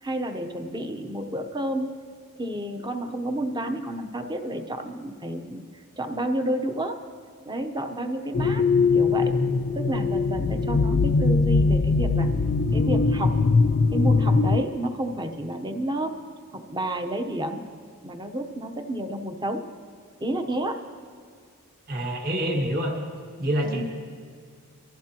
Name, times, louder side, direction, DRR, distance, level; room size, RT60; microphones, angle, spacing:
voice 1, 0.0-1.9 2.4-5.6 6.0-7.0 7.5-8.6 8.9-9.3 9.8-12.3 12.7-13.3 13.9-16.1 16.5-17.6 18.0-19.6 20.2-20.8 23.6-23.8, right 1 dB, 20° right, 6 dB, 0.9 m, -30 dB
sound 1, 8.3-14.6, left 4 dB, 40° left, 0.3 m, -21 dB
voice 2, 21.9-22.9 23.4-23.8, right 1 dB, 40° right, 0 dB, 1.7 m, -26 dB
24.0 x 15.0 x 3.0 m, 2.1 s
head